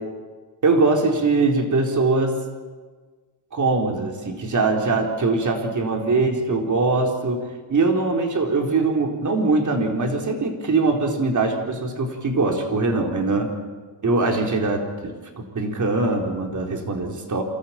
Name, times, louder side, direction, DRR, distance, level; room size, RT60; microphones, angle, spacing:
voice 1, 0.6-2.4 3.5-7.4 7.7-13.5 14.0-17.4, right 3 dB, 40° right, 2 dB, 4.3 m, -22 dB
27.5 x 14.0 x 8.9 m, 1.4 s
cardioid pair, 90°, 47 cm